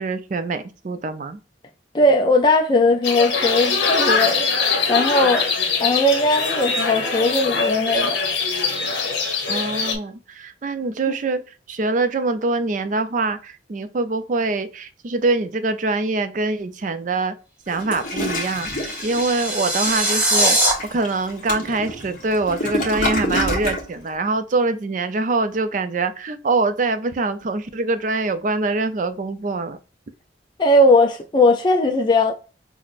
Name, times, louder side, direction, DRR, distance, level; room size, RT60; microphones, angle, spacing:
voice 1, 0.0-1.4 9.5-17.3 17.7-18.7 19.0-20.6 20.9-29.8, right 3 dB, 45° right, 0.4 m, -24 dB
voice 2, 1.9-4.5 4.9-5.4 5.8-8.2 11.1-11.2 30.6-32.3, left 1 dB, 25° left, 0.3 m, -18 dB
sound 1, 3.0-10.0, left 4 dB, 70° left, 1.0 m, -22 dB
Toilet flush, 17.7-23.9, left 1 dB, 45° left, 1.0 m, -28 dB
sound 2, 18.0-20.7, right 1 dB, 10° right, 1.0 m, -22 dB
5.7 x 2.1 x 2.4 m
head